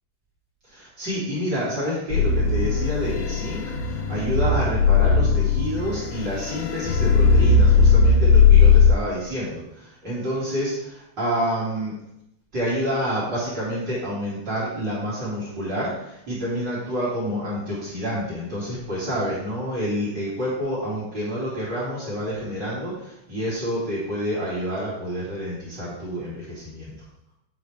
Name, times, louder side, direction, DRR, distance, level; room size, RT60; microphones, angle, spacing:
voice 1, 0.7-11.9 12.5-26.9, equal, 40° right, -9 dB, 1.7 m, -28 dB
sound 1, 2.1-8.9, left 5 dB, 85° left, 3.1 m, -18 dB
9.8 x 4.6 x 3.4 m, 0.81 s
omnidirectional pair, 5.7 m